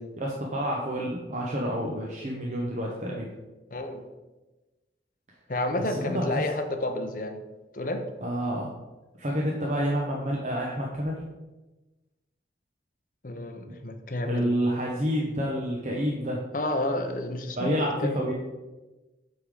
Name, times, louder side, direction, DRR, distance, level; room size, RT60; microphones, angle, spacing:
voice 1, 0.2-3.3 6.0-6.4 8.2-8.7 9.2-11.2 14.2-16.4 17.6-18.3, equal, 40° right, -2 dB, 0.9 m, -28 dB
voice 2, 3.7-4.1 5.5-7.4 7.7-8.1 13.2-14.5 16.5-18.3, left 1 dB, 45° left, 6 dB, 0.7 m, -30 dB
8.3 x 3.8 x 4.8 m, 1.1 s
head